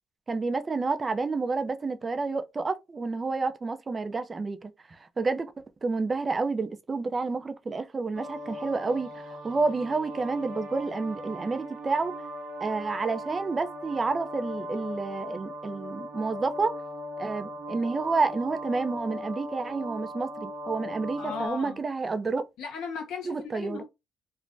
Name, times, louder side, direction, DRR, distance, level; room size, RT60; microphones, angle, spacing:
voice 1, 0.3-4.7 5.2-5.5 5.8-12.1 12.6-16.7 17.2-22.4 23.3-23.8, right 3 dB, 30° right, 0.4 m, -29 dB
sound 1, 8.1-21.5, equal, 90° right, 1.1 m, -39 dB
voice 2, 21.2-21.8 22.6-23.8, left 5 dB, 90° left, 1.1 m, -36 dB
3.2 x 2.1 x 2.5 m
cardioid pair, 90°, 0 cm